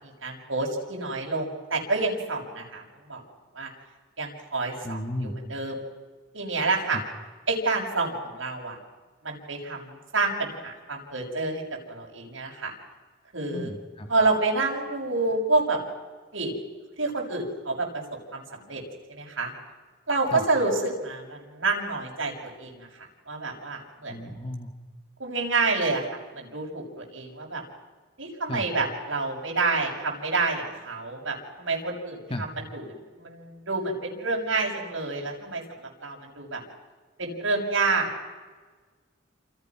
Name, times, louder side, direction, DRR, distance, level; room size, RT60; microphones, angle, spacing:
voice 1, 0.0-3.2 3.5-3.7 4.2-5.8 6.3-7.0 7.5-8.8 9.2-12.7 13.3-13.7 14.1-15.8 16.3-16.5 17.0-18.0 18.3-18.8 19.1-19.5 20.1-22.9 23.3-24.3 25.2-27.6 28.2-36.6 37.2-38.3, right 3 dB, 85° right, 0 dB, 6.8 m, -28 dB
voice 2, 4.8-5.4 6.9-7.0 13.5-14.1 20.3-20.4 24.1-24.7 28.5-28.6 32.3-32.5, left 1 dB, 30° left, 5 dB, 1.7 m, -33 dB
29.5 x 28.0 x 6.1 m, 1.4 s
head